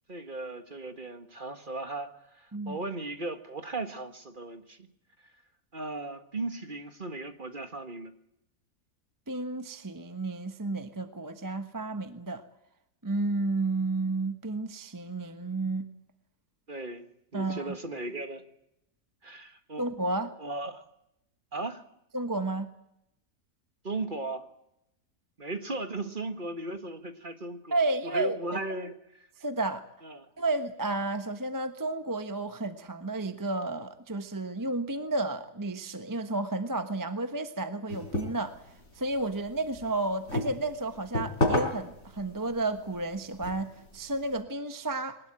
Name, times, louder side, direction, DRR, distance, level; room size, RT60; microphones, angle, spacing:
voice 1, 0.1-4.9 5.2-5.3 5.7-8.1 16.7-17.1 17.3-18.5 19.2-19.9 20.4-20.9 21.5-21.8 23.8-24.5 25.4-27.8 28.0-29.3 30.0-30.3, right 2 dB, 35° right, 8 dB, 1.7 m, -37 dB
voice 2, 9.3-12.4 13.0-15.9 17.3-17.7 19.8-20.3 22.1-22.7 27.7-28.4 29.4-29.8 30.4-38.6 38.9-45.2, right 2 dB, 15° right, 9 dB, 1.1 m, -32 dB
sound 1, 37.9-44.4, left 2 dB, 50° left, 5.5 m, -34 dB
22.0 x 19.5 x 9.0 m, 0.81 s
omnidirectional pair, 1.6 m